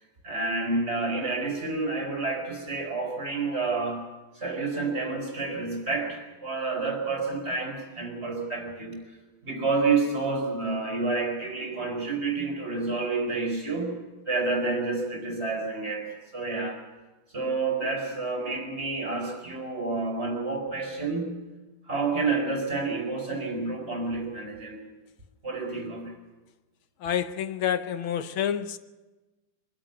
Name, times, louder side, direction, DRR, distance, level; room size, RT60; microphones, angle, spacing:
voice 1, 0.2-4.0 4.4-9.0 9.4-14.0 14.3-16.8 17.3-21.4 21.9-24.8 25.4-26.1, right 3 dB, 30° right, 5.2 m, -29 dB
voice 2, 27.0-28.8, left 9 dB, 80° left, 1.7 m, -28 dB
24.0 x 12.5 x 9.3 m
omnidirectional pair, 2.2 m